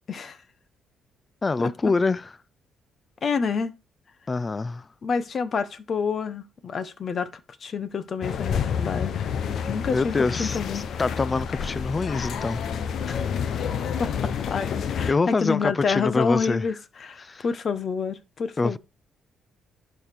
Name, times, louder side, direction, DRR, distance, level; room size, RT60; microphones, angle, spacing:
voice 1, 0.1-0.4 1.6-1.7 3.2-3.7 5.0-7.3 7.6-9.1 9.7-10.8 13.1-13.2 14.0-18.8, left 5 dB, 50° left, 1.2 m, -28 dB
voice 2, 1.4-2.3 4.3-4.9 9.9-12.6 15.1-16.6 17.2-17.4 18.6-18.8, left 3 dB, 30° left, 0.6 m, -25 dB
sound 1, 8.2-15.1, left 7 dB, 65° left, 1.0 m, -29 dB
11.5 x 5.1 x 4.6 m
cardioid pair, 90°, 0 cm